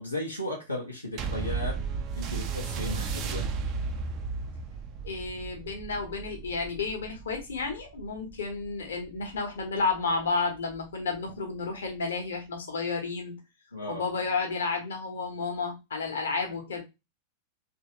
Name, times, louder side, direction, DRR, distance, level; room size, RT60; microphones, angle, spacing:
voice 1, 0.0-1.8 2.1-3.5 13.7-14.0, left 1 dB, 90° left, -1 dB, 0.7 m, -35 dB
sound 1, 1.2-9.9 10.7-10.8, right 5 dB, 35° right, 0.5 m, -34 dB
voice 2, 5.0-13.3 13.9-16.8, left 4 dB, 65° left, 2 dB, 1.1 m, -31 dB
3.1 x 2.7 x 2.9 m, 0.24 s
figure-of-eight pair, 90°, 0 cm